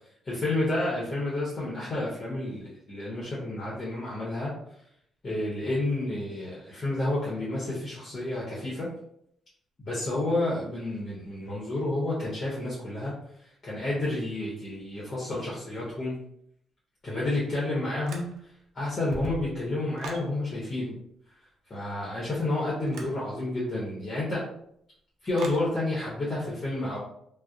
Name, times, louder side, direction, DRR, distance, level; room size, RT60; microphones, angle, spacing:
voice 1, 0.3-4.5 5.2-8.9 9.8-16.1 17.0-20.9 21.7-24.4 25.2-27.0, left 2 dB, 40° left, -6 dB, 0.8 m, -30 dB
sound 1, 18.0-18.6 19.0-20.3 22.9-23.2 25.4-25.7, right 2 dB, 75° right, 0.4 m, -40 dB
2.6 x 2.0 x 2.4 m, 0.72 s
cardioid pair, 90°, 0 cm